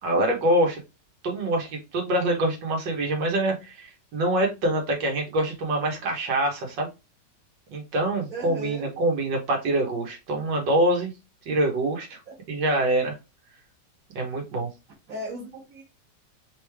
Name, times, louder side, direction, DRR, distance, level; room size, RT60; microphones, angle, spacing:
voice 1, 0.0-0.8 1.2-6.9 7.7-11.1 11.5-12.2 12.5-13.1 14.2-14.7, right 1 dB, 85° right, 1 dB, 1.8 m, -25 dB
voice 2, 8.3-8.9 12.3-12.4 15.1-15.8, right 1 dB, 55° right, -4 dB, 1.6 m, -36 dB
4.0 x 3.2 x 3.4 m, 0.26 s
omnidirectional pair, 1.9 m